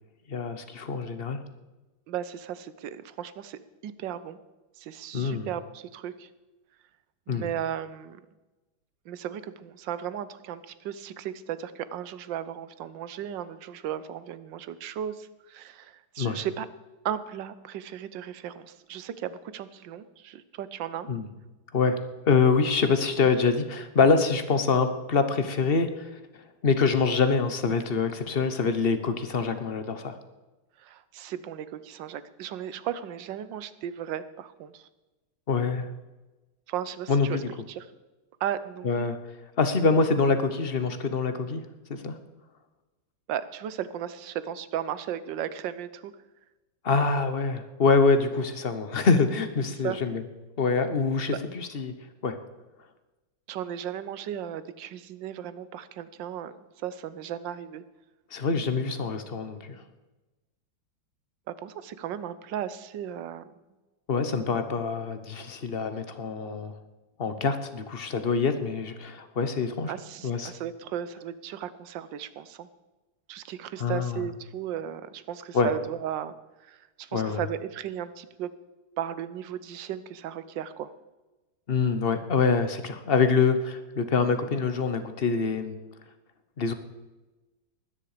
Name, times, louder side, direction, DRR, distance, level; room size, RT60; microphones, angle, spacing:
voice 1, 0.3-1.4 5.1-5.5 7.3-7.5 16.2-16.4 21.1-21.3 21.7-26.1 26.6-30.1 35.5-35.9 37.1-37.4 38.8-39.2 39.6-41.6 42.0-42.2 46.8-50.2 50.6-51.9 52.2-52.4 58.3-59.8 64.1-66.7 67.2-69.9 70.2-70.5 73.8-74.2 75.5-75.7 77.1-77.4 81.7-85.8 86.6-86.7, left 4 dB, 40° left, 9 dB, 0.9 m, -25 dB
voice 2, 2.1-4.4 4.8-6.3 7.3-8.2 9.1-16.7 17.0-21.1 30.8-34.8 36.7-37.4 37.7-37.9 38.4-39.1 43.3-46.1 49.8-50.0 53.5-57.8 61.5-63.5 69.9-72.7 73.3-76.3 76.7-78.5 79.0-80.9, right 10 dB, 70° right, 14 dB, 1.4 m, -35 dB
20.5 x 10.0 x 5.0 m, 1.1 s
omnidirectional pair, 2.3 m